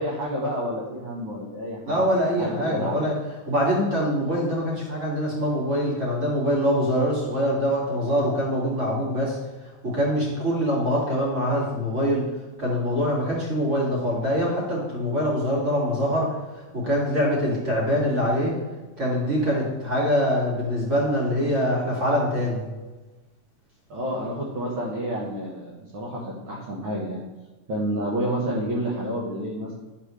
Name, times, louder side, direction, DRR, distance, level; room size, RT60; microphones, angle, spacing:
voice 1, 0.0-3.1 23.9-27.2 27.7-29.7, equal, 60° right, -6 dB, 1.4 m, -29 dB
voice 2, 1.9-3.1 3.5-9.4 9.8-12.3 12.6-16.3 16.7-18.6 19.0-22.6, equal, 25° right, -5 dB, 2.1 m, -24 dB
12.0 x 4.1 x 3.2 m, 1.2 s
omnidirectional pair, 3.7 m